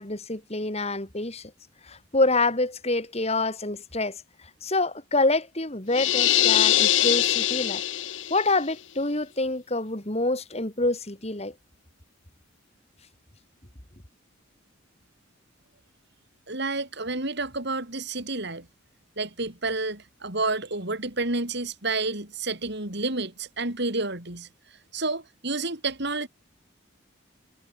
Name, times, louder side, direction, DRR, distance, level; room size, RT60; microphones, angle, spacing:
voice 1, 0.0-1.5 1.8-4.2 4.6-7.8 8.3-11.5, left 2 dB, 30° left, 3.0 m, -26 dB
sound 1, 5.9-8.5, left 13 dB, 60° left, 0.7 m, -22 dB
voice 2, 16.5-18.7 19.2-24.5 24.9-26.3, right 3 dB, 55° right, 4.2 m, -30 dB
head